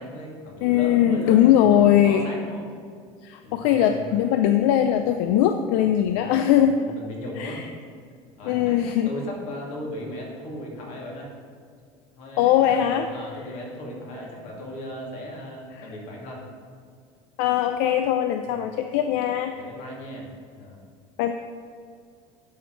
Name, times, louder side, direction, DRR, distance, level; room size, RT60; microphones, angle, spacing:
voice 1, 0.0-2.7 3.4-4.1 6.1-6.3 6.8-7.6 8.4-8.7 9.0-11.3 12.2-16.4 18.5-18.6 19.5-20.8, left 1 dB, 55° left, -2 dB, 2.3 m, -37 dB
voice 2, 0.6-2.3 3.2-6.8 7.4-7.6 8.5-9.1 12.4-13.1 15.8-15.9 17.4-19.5 21.2-21.3, left 10 dB, 80° left, 7 dB, 0.4 m, -20 dB
11.5 x 4.6 x 4.6 m, 2.2 s
cardioid pair, 135°, 14 cm